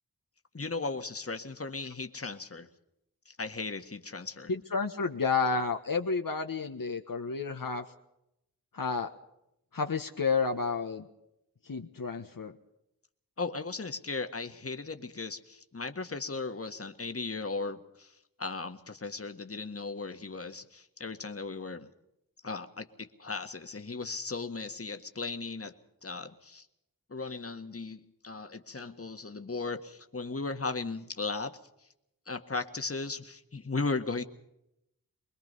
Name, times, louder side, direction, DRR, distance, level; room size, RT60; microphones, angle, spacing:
voice 1, 0.5-2.7 3.3-4.5 13.4-18.1 18.4-21.9 22.4-25.7 26.0-26.7 27.1-31.5 32.3-34.2, left 3 dB, 40° left, 7 dB, 1.7 m, -36 dB
voice 2, 4.5-7.8 8.7-9.1 9.7-11.1 11.7-12.5, left 4 dB, 65° left, 4 dB, 1.4 m, -31 dB
24.5 x 21.5 x 5.5 m, 0.82 s
wide cardioid pair, 55°, 36 cm